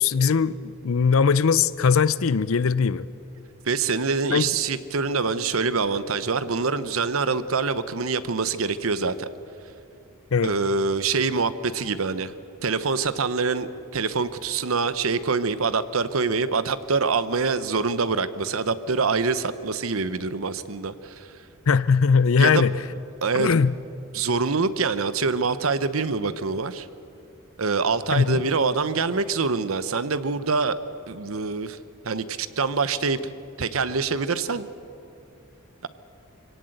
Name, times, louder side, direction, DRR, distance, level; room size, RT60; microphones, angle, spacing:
voice 1, 0.0-3.1 4.3-4.5 10.3-10.5 21.7-22.7 23.3-23.7 28.1-28.4, left 5 dB, 70° left, 0.5 m, -20 dB
voice 2, 3.6-9.3 10.4-12.3 12.6-21.3 22.4-22.7 23.2-23.5 24.1-26.9 27.6-30.8 31.1-31.8 32.0-33.2 33.6-34.7, right 4 dB, 70° right, 0.9 m, -25 dB
24.5 x 17.5 x 7.9 m
head